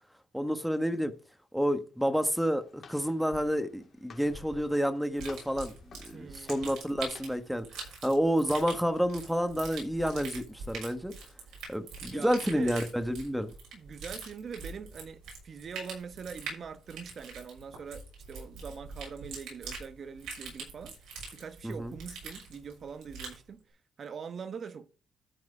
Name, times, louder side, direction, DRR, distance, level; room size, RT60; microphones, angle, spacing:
voice 1, 0.3-1.1 1.5-11.1 11.7-13.5 21.6-21.9, equal, ahead, 1.3 m, -30 dB
Walk footsteps, 2.2-7.5, left 4 dB, 50° left, 2.7 m, -53 dB
sound 1, 5.2-23.4, right 4 dB, 85° right, 6.4 m, -44 dB
voice 2, 6.1-6.6 12.1-12.8 13.7-23.6 24.0-24.9, right 6 dB, 50° right, 1.1 m, -43 dB
13.5 x 4.8 x 4.9 m
cardioid pair, 90°, 0 cm